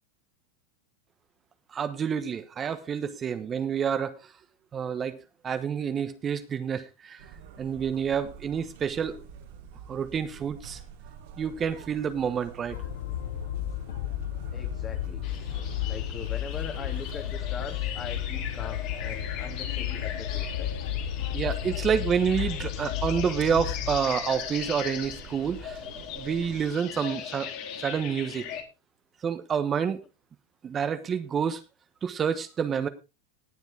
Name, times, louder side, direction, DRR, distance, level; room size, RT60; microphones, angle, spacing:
voice 1, 1.7-4.3 4.7-5.2 5.4-7.2 7.6-9.2 9.9-10.8 11.4-12.8 21.3-25.8 26.2-27.5 27.8-28.5 29.2-30.0 30.6-31.6 32.0-32.9, right 7 dB, 25° right, 10 dB, 1.1 m, -28 dB
sound 1, 7.2-26.6, right 7 dB, 70° right, 2.8 m, -47 dB
Train, 12.7-24.0, left 12 dB, 70° left, 1.0 m, -33 dB
voice 2, 14.5-15.3 15.8-20.8, left 6 dB, 30° left, 7 dB, 2.3 m, -41 dB
sound 2, 15.2-28.6, left 9 dB, 50° left, 2.8 m, -39 dB
19.5 x 7.2 x 3.4 m, 0.27 s
hypercardioid pair, 110°, 0 cm